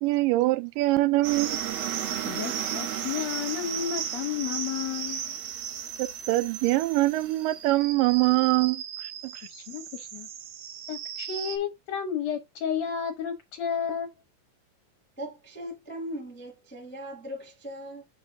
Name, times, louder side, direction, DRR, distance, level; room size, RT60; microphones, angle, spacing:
voice 1, 0.0-1.6 6.3-8.8, right 19 dB, 85° right, 2.2 m, -23 dB
sound 1, 1.2-11.6, right 9 dB, 65° right, 1.7 m, -35 dB
voice 2, 2.2-5.4 9.4-10.3 10.9-14.1, left 8 dB, 70° left, 1.7 m, -32 dB
voice 3, 15.2-18.0, equal, 10° left, 0.4 m, -39 dB
7.3 x 5.4 x 2.5 m
omnidirectional pair, 3.9 m